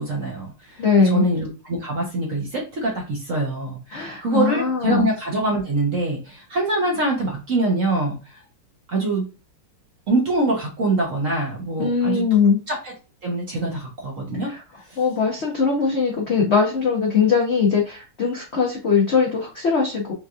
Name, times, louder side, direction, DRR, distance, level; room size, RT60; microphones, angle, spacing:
voice 1, 0.0-8.4 8.9-9.3 10.1-12.2 12.7-12.9 13.2-14.5 14.9-15.0, right 2 dB, 50° right, -2 dB, 1.0 m, -24 dB
voice 2, 0.8-1.3 3.9-5.1 11.8-12.6 14.4-14.6 15.0-20.1, left 5 dB, 75° left, -2 dB, 0.6 m, -20 dB
4.5 x 2.7 x 2.3 m, 0.32 s
omnidirectional pair, 2.4 m